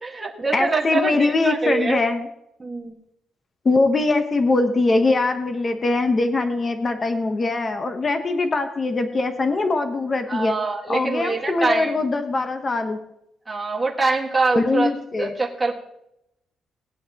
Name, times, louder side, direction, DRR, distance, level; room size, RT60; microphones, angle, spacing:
voice 1, 0.0-2.0 2.6-2.9 10.3-12.0 13.5-14.9 15.2-15.7, right 3 dB, 15° right, 0 dB, 1.8 m, -24 dB
voice 2, 0.5-2.2 3.6-10.5 10.9-13.0 14.5-15.3, left 3 dB, 30° left, 6 dB, 1.1 m, -22 dB
19.5 x 9.2 x 3.0 m, 0.79 s
cardioid pair, 155°, 0 cm